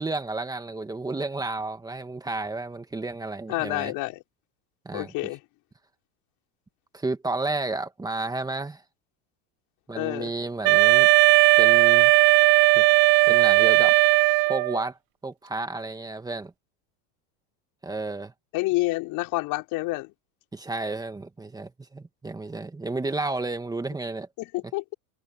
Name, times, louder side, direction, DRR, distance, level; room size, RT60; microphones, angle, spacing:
voice 1, 0.0-3.9 4.9-5.3 6.9-8.8 9.9-11.1 11.6-12.1 12.7-12.9 13.3-14.0 14.5-15.0 15.2-16.5 17.8-18.3 20.5-24.3, right 2 dB, 10° right, 1.9 m, -32 dB
voice 2, 3.5-4.2 4.9-5.4 10.0-10.3 18.5-20.1 24.4-24.9, left 21 dB, 50° left, 5.4 m, -28 dB
Wind instrument woodwind instrument, 10.6-14.8, right 22 dB, 50° right, 1.9 m, -17 dB
supercardioid pair, 140°, 43 cm